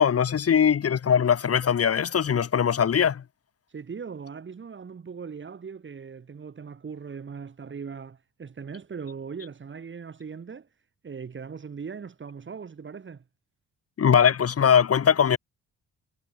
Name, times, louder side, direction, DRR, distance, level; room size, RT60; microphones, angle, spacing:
voice 1, 0.0-3.2 14.0-15.4, left 7 dB, 50° left, 4.6 m, -21 dB
voice 2, 3.7-10.7 11.0-13.2, right 6 dB, 40° right, 6.0 m, -39 dB
cardioid pair, 90°, 30 cm